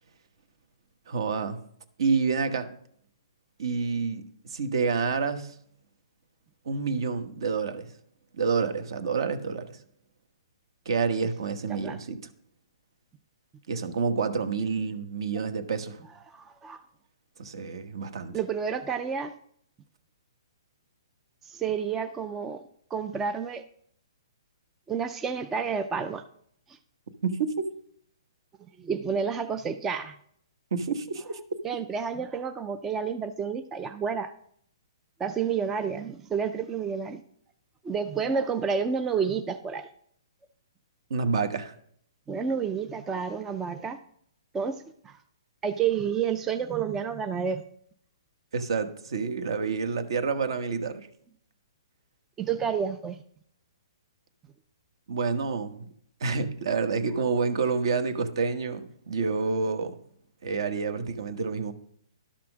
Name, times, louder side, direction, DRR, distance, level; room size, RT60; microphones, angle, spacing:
voice 1, 1.1-1.6 2.0-2.7 3.6-5.6 6.6-7.9 8.4-9.8 10.8-12.2 13.7-16.0 17.4-18.4 27.2-27.7 30.7-31.4 41.1-41.7 48.5-51.1 55.1-55.9 56.2-60.0 60.4-61.7, right 5 dB, 60° right, 9 dB, 1.2 m, -28 dB
voice 2, 16.3-16.8 18.3-19.3 21.4-22.6 22.9-23.6 24.9-26.2 28.8-30.1 31.6-34.3 35.2-37.2 37.8-39.9 42.3-44.0 44.5-45.2 45.6-47.6 52.4-53.2, right 6 dB, 10° right, 8 dB, 0.3 m, -30 dB
11.5 x 5.9 x 6.1 m, 0.65 s
hypercardioid pair, 165°, 3 cm